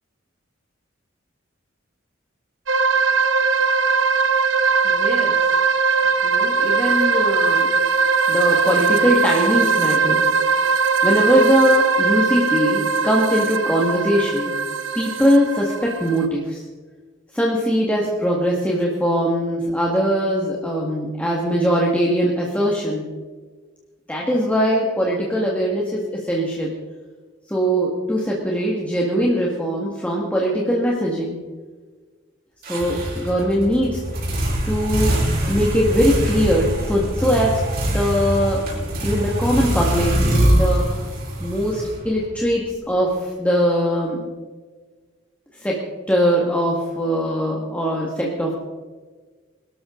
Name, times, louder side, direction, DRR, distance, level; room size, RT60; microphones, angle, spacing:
sound 1, 2.7-16.2, right 4 dB, 75° right, 1.1 m, -20 dB
voice 1, 4.8-5.4 6.2-7.7 8.3-10.3 11.0-14.5 15.0-16.6 17.3-23.1 24.1-26.7 27.5-31.4 32.7-34.0 34.7-37.6 37.9-38.7 39.0-41.0 41.4-44.3 45.6-48.5, equal, 5° left, -3 dB, 1.9 m, -21 dB
sound 2, 32.6-42.4, right 1 dB, 50° right, 4.6 m, -23 dB
22.5 x 12.5 x 3.9 m, 1.4 s
head